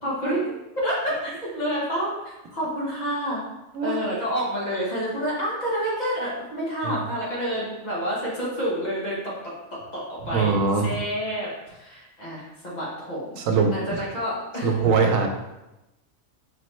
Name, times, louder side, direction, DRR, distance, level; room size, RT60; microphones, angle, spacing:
voice 1, 0.0-3.4 3.8-10.5 10.8-13.4 13.7-14.7, equal, 35° left, -6 dB, 1.3 m, -29 dB
voice 2, 10.3-10.9 13.4-13.7 14.6-15.3, right 5 dB, 85° right, 4 dB, 1.0 m, -21 dB
5.2 x 3.0 x 3.0 m, 0.96 s
omnidirectional pair, 1.4 m